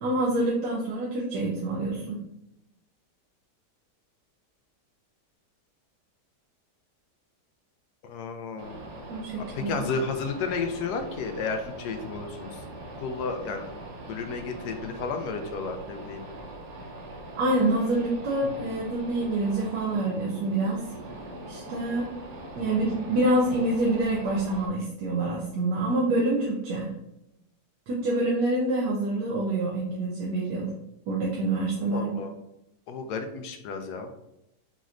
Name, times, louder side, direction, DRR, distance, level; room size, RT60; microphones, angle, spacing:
voice 1, 0.0-2.2 9.1-9.8 17.4-20.8 21.5-22.0 22.6-26.9 27.9-30.7 31.1-32.1, right 2 dB, 90° right, -3 dB, 1.4 m, -26 dB
voice 2, 8.0-8.8 9.5-12.6 13.0-13.7 14.1-16.2 31.9-32.3 32.9-34.1, left 4 dB, 75° left, 5 dB, 1.1 m, -32 dB
sound 1, 8.6-24.7, right 1 dB, 50° right, 1.0 m, -42 dB
5.2 x 3.1 x 2.5 m, 0.83 s
omnidirectional pair, 1.8 m